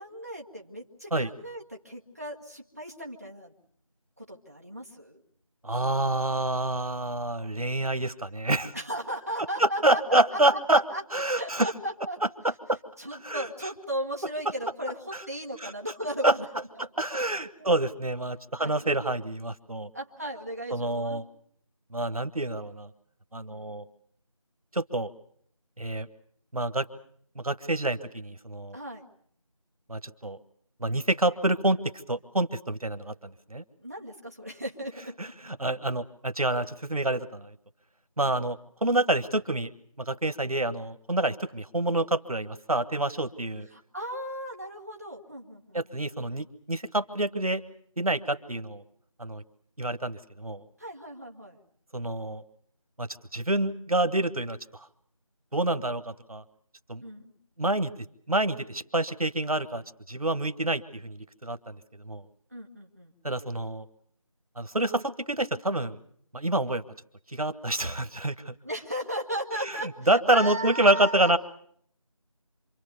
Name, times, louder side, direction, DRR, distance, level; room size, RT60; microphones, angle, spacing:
voice 1, 0.0-3.5 4.2-5.2 8.7-11.0 11.3-12.2 13.0-16.5 17.1-17.2 17.6-17.7 18.6-18.7 19.9-21.2 23.5-23.8 28.7-29.0 30.9-31.0 33.8-35.3 43.7-46.1 50.8-51.6 57.0-57.3 62.5-63.1 68.6-71.3, equal, 25° right, -1 dB, 1.5 m, -36 dB
voice 2, 5.6-8.7 9.6-10.8 11.1-11.7 12.7-12.8 13.2-13.4 15.1-15.2 15.6-15.7 16.2-16.4 16.8-19.9 20.7-21.2 21.9-22.9 23.3-23.8 24.7-25.1 25.8-26.1 26.5-26.9 27.3-28.8 29.9-30.4 30.8-31.8 32.1-33.6 35.2-37.5 38.2-39.7 40.0-43.7 45.7-47.6 48.0-48.8 49.2-49.4 49.8-50.6 51.9-52.4 53.0-54.9 55.5-56.4 56.9-57.0 57.6-57.9 58.3-61.8 62.0-62.2 63.2-63.8 64.6-66.0 66.3-66.8 67.3-68.5 69.6-71.4, right 2 dB, 90° right, 10 dB, 1.5 m, -27 dB
26.5 x 22.5 x 6.9 m, 0.63 s
figure-of-eight pair, 180°, 18 cm